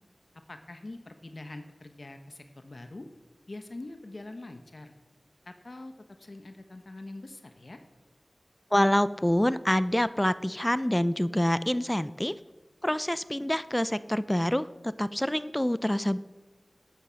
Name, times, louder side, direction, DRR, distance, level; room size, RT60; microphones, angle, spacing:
voice 1, 0.5-3.1 3.5-4.9 5.4-5.9 6.2-7.8, left 2 dB, 55° left, 7 dB, 1.0 m, -44 dB
voice 2, 8.7-12.3 12.8-16.2, left 1 dB, 15° left, 16 dB, 0.4 m, -26 dB
13.5 x 11.0 x 5.7 m, 1.2 s
wide cardioid pair, 50°, 0 cm